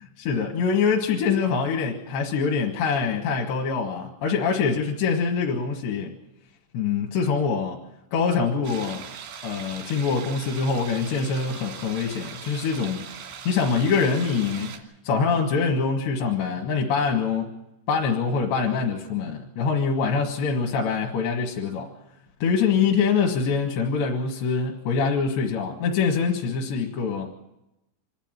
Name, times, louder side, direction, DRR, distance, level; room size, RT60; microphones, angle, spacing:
voice 1, 0.3-6.1 6.7-7.8 8.1-9.0 9.4-14.7 15.0-17.5 17.9-21.9 22.4-27.3, left 5 dB, 80° left, 0 dB, 3.9 m, -24 dB
sound 1, 8.6-14.8, right 7 dB, 90° right, 4.4 m, -40 dB
26.5 x 11.5 x 9.0 m, 0.93 s
omnidirectional pair, 4.9 m